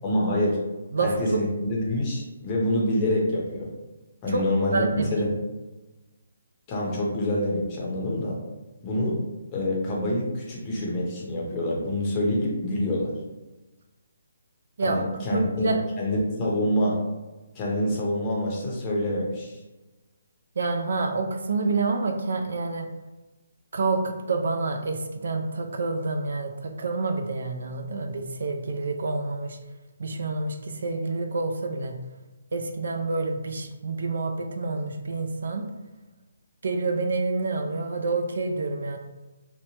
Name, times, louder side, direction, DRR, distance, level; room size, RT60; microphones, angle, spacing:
voice 1, 0.0-0.6 1.0-3.7 4.2-5.3 6.7-8.4 8.8-9.2 9.5-13.1 14.8-15.7 16.0-17.0 17.5-19.6, left 1 dB, 20° left, -3 dB, 0.6 m, -26 dB
voice 2, 0.9-1.5 4.3-4.5 4.7-5.2 14.8-15.8 20.6-22.9 23.7-29.6 30.0-31.9 32.5-35.6 36.6-39.0, right 3 dB, 65° right, 4 dB, 0.3 m, -28 dB
2.9 x 2.1 x 2.7 m, 1.1 s
hypercardioid pair, 165°, 0 cm